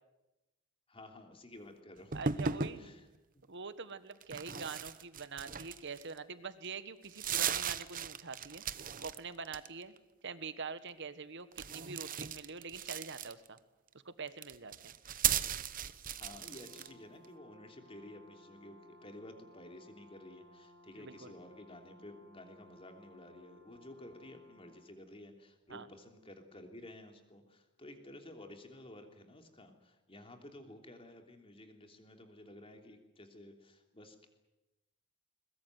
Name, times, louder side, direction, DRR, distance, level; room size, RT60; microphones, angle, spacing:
voice 1, 0.9-2.3 2.8-3.1 16.1-34.3, left 1 dB, 25° left, 5 dB, 3.2 m, -53 dB
sound 1, 2.1-2.8 4.2-6.2 6.6-6.7 7.0-9.2 9.4-10.0 11.5-13.6 14.3-16.9, right 7 dB, 40° right, 0.9 m, -36 dB
voice 2, 2.1-2.9 3.5-8.6 9.0-9.9 10.2-13.6 14.0-14.9 21.0-21.3 25.7-25.9, right 4 dB, 55° right, 12 dB, 1.5 m, -45 dB
Brass instrument, 16.3-25.0, left 1 dB, 85° right, 3.8 m, -60 dB
21.5 x 21.5 x 9.5 m, 1.0 s
head